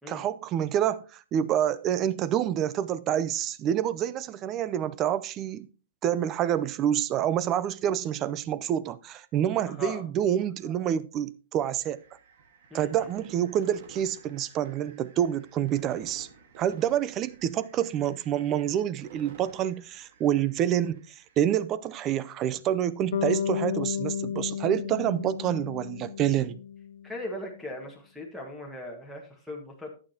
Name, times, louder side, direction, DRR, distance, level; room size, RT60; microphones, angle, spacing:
voice 1, 0.1-5.7 6.0-12.0 12.7-16.3 16.6-21.0 21.4-26.6, right 10 dB, 25° right, 0.5 m, -27 dB
voice 2, 9.7-10.0 12.7-13.1 27.0-29.9, left 1 dB, 5° right, 1.6 m, -39 dB
sound 1, 11.8-21.6, right 4 dB, 55° right, 1.8 m, -52 dB
Bass guitar, 23.1-27.2, left 8 dB, 75° left, 0.3 m, -33 dB
11.5 x 8.9 x 2.9 m
hypercardioid pair, 155°, 0 cm